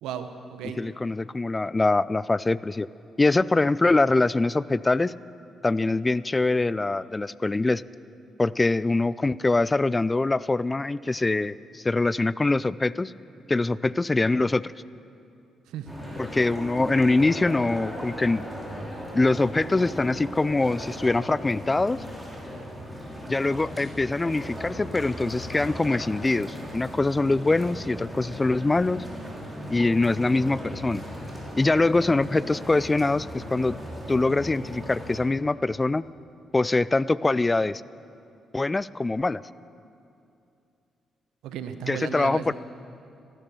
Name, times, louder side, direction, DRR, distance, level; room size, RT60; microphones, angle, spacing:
voice 1, 0.0-0.8 15.7-15.9 41.4-42.5, right 8 dB, 80° right, 9 dB, 0.9 m, -35 dB
voice 2, 0.8-2.9 3.2-5.1 5.6-7.8 8.4-13.1 13.5-14.7 16.2-18.4 19.1-22.0 23.3-29.0 29.7-31.0 31.6-33.8 34.1-36.0 36.5-37.8 38.5-39.4 41.9-42.5, left 2 dB, 25° left, 19 dB, 0.3 m, -23 dB
sound 1, 15.9-35.2, equal, 10° right, 4.8 m, -37 dB
15.5 x 12.0 x 6.8 m, 2.6 s
hypercardioid pair, 45°, 0 cm